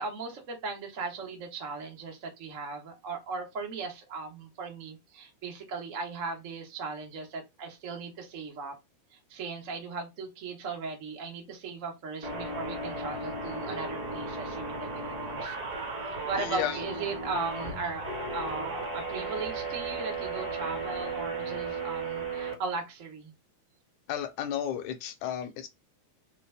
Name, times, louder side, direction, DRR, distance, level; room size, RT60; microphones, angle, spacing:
voice 1, 0.0-8.8 9.1-15.5 16.2-18.0 18.3-23.3, right 4 dB, 70° right, 0.7 m, -37 dB
sound 1, 12.2-22.5, right 3 dB, 35° right, 1.4 m, -35 dB
voice 2, 16.4-16.8 24.1-25.7, left 10 dB, 80° left, 1.9 m, -33 dB
4.6 x 2.9 x 3.3 m
omnidirectional pair, 3.6 m